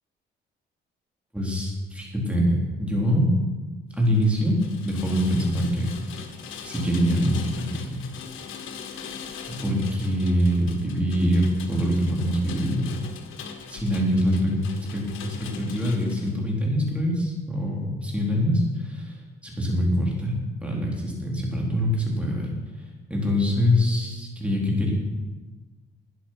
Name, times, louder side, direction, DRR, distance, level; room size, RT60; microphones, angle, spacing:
voice 1, 1.3-3.3 4.0-4.5 4.8-5.9 6.6-8.0 9.5-12.9 13.7-14.6 14.9-19.2 19.4-22.5 23.1-24.9, equal, 5° right, -2 dB, 4.3 m, -24 dB
Rain, 4.0-16.3, left 6 dB, 90° left, 1.4 m, -41 dB
13.0 x 10.0 x 6.0 m, 1.2 s
cardioid pair, 90°, 20 cm